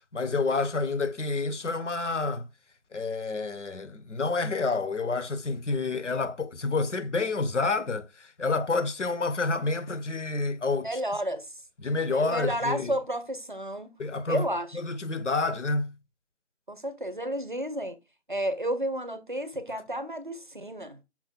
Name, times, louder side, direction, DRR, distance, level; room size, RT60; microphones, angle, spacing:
voice 1, 0.1-2.5 2.9-11.0 11.8-12.9 14.0-14.5 14.7-15.9, left 3 dB, 85° left, 0.7 m, -29 dB
voice 2, 10.8-11.5 12.1-13.9 14.3-14.8 16.7-18.0 18.3-21.0, right 1 dB, 45° right, 0.6 m, -31 dB
5.8 x 2.2 x 3.8 m
figure-of-eight pair, 170°, 35 cm